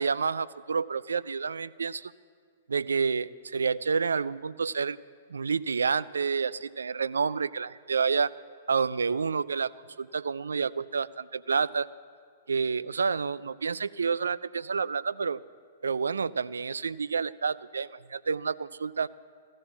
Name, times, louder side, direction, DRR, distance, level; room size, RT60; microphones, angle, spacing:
voice 1, 0.0-2.1 2.7-5.0 5.3-8.3 8.7-9.7 10.0-11.9 12.5-15.4 15.8-19.1, right 5 dB, 80° right, 17 dB, 0.4 m, -29 dB
15.5 x 12.5 x 7.2 m, 2.1 s
figure-of-eight pair, 115°, 0 cm